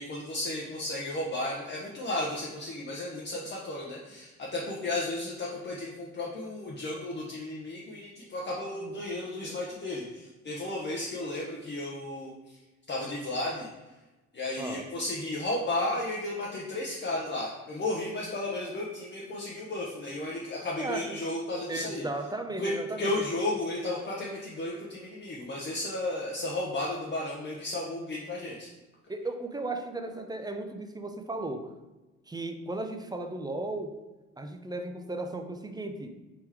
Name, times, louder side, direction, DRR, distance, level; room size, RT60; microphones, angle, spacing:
voice 1, 0.0-12.6 12.9-13.7 14.3-22.0 22.6-28.7, left 2 dB, 35° left, -3 dB, 0.8 m, -33 dB
voice 2, 21.7-23.1 29.1-31.7 32.3-33.9 34.4-36.1, right 2 dB, 15° right, 6 dB, 0.5 m, -35 dB
3.7 x 3.0 x 4.6 m, 1.1 s
cardioid pair, 90°, 30 cm